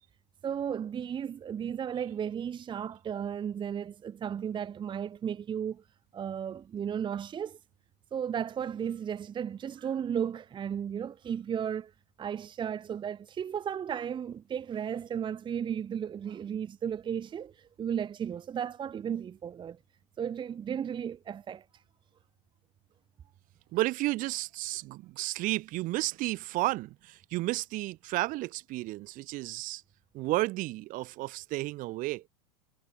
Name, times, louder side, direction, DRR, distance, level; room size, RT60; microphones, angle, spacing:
voice 1, 0.4-5.8 6.1-7.6 8.1-11.9 12.2-19.8 20.2-21.6, right 8 dB, 25° right, 1.2 m, -34 dB
voice 2, 23.7-29.8 30.1-32.2, right 19 dB, 45° right, 1.5 m, -32 dB
hypercardioid pair, 95°, 19 cm